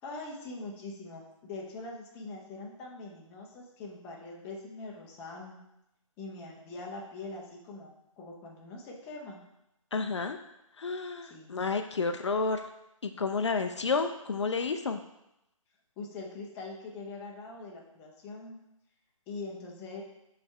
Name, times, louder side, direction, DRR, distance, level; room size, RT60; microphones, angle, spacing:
voice 1, 0.0-5.6 6.2-9.4 11.2-11.6 16.0-18.6 19.3-20.0, left 3 dB, 10° left, -2 dB, 0.6 m, -43 dB
voice 2, 9.9-10.4 10.8-12.6 13.0-15.0, left 4 dB, 55° left, 6 dB, 0.5 m, -30 dB
6.9 x 3.3 x 4.4 m, 0.86 s
figure-of-eight pair, 145°, 18 cm